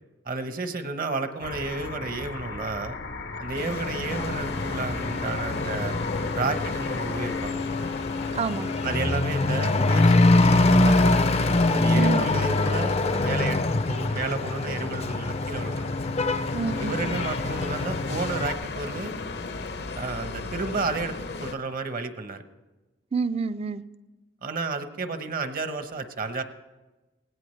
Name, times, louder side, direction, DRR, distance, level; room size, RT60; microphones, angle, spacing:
voice 1, 0.2-3.0 3.4-5.9 6.3-7.6 8.8-11.0 11.7-15.9 16.8-19.1 20.0-22.4 24.4-26.4, right 3 dB, 50° right, 9 dB, 0.9 m, -32 dB
sound 1, 1.4-7.5, left 3 dB, 90° left, 1.0 m, -37 dB
sound 2, 3.5-21.5, left 3 dB, 65° left, 0.8 m, -36 dB
Truck / Accelerating revving vroom, 4.1-18.5, left 2 dB, 35° left, 0.5 m, -24 dB
voice 2, 8.3-8.9 11.9-12.5 16.5-17.2 23.1-23.8, right 4 dB, 35° right, 13 dB, 0.4 m, -29 dB
18.5 x 17.0 x 3.2 m, 1.1 s
head